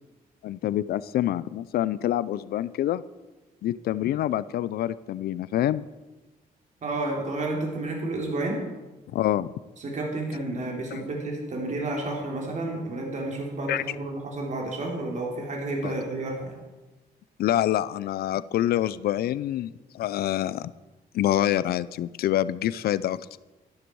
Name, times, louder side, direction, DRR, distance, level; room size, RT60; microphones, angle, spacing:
voice 1, 0.4-3.0 3.6-5.8 9.1-9.5 10.9-11.1 13.7-13.8 15.8-15.9 17.4-20.7 21.1-23.3, left 12 dB, 75° left, 17 dB, 0.5 m, -26 dB
voice 2, 6.8-8.6 9.8-16.5, right 2 dB, 50° right, 0 dB, 3.4 m, -31 dB
13.0 x 11.5 x 4.7 m, 1.1 s
cardioid pair, 105°, 16 cm